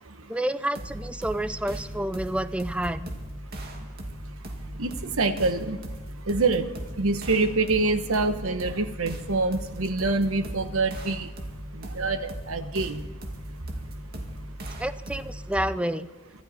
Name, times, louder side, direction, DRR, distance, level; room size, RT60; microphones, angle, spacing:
voice 1, 0.3-3.1 14.8-16.1, right 1 dB, 5° right, 13 dB, 0.4 m, -29 dB
sound 1, 0.7-15.5, right 1 dB, 45° right, 2.2 m, -38 dB
voice 2, 4.8-5.8 6.3-6.7 7.0-11.3 11.7-13.1, right 3 dB, 70° right, 9 dB, 1.1 m, -26 dB
24.5 x 12.5 x 4.3 m, 1.2 s
head